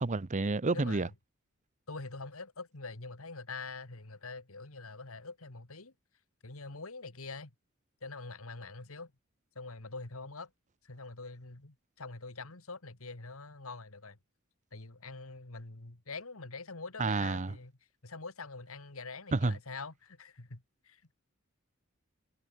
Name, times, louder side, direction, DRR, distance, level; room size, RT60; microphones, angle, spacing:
voice 1, 0.0-1.1 17.0-17.5 19.3-19.5, right 3 dB, 35° right, 0.7 m, -29 dB
voice 2, 0.7-1.1 1.9-5.9 6.4-7.5 8.0-9.1 9.6-10.5 10.8-14.2 14.7-17.7 18.0-21.1, left 3 dB, 75° left, 2.2 m, -45 dB
head